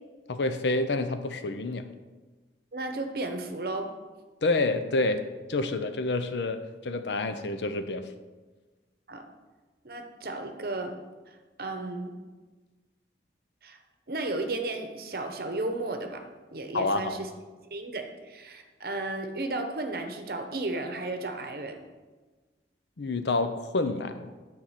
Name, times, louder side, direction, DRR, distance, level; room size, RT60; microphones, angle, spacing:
voice 1, 0.3-1.9 4.4-5.2 5.5-8.1 16.7-17.2 23.0-24.2, left 2 dB, 80° left, 9 dB, 0.6 m, -28 dB
voice 2, 2.7-3.9 9.1-9.3 9.8-11.0 11.6-12.1 13.6-13.8 14.1-17.3 17.7-21.8, right 2 dB, 55° right, 5 dB, 0.9 m, -34 dB
9.8 x 3.9 x 5.8 m, 1.3 s
head